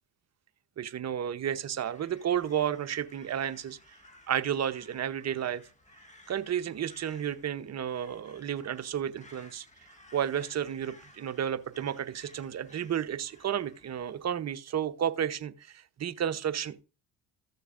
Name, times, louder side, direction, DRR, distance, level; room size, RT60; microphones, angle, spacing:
voice 1, 0.8-3.8 4.3-5.6 6.3-9.6 10.1-16.8, right 9 dB, 35° right, 0.8 m, -32 dB
Crow, 1.6-14.3, left 1 dB, 15° left, 1.9 m, -57 dB
15.0 x 6.6 x 2.5 m
hypercardioid pair, 60°, 45 cm